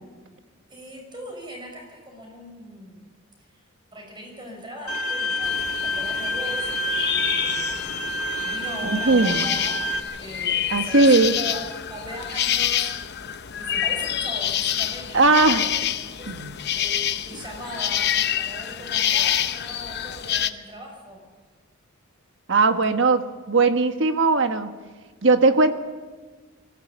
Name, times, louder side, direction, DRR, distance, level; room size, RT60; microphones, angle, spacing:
voice 1, 0.7-3.0 3.4-3.6 3.9-8.0 8.4-9.8 10.2-11.6 11.9-15.7 16.2-16.4 16.7-21.2, equal, 25° right, 2 dB, 5.9 m, -39 dB
Bowed string instrument, 4.9-10.0, equal, 85° left, 1.7 m, -27 dB
sound 1, 5.4-20.5, left 10 dB, 55° left, 0.8 m, -27 dB
voice 2, 9.0-9.4 10.7-11.3 15.1-15.6 16.3-16.5 22.5-24.7 25.2-25.7, right 3 dB, 60° right, 8 dB, 1.4 m, -18 dB
23.5 x 15.5 x 8.5 m, 1.4 s
head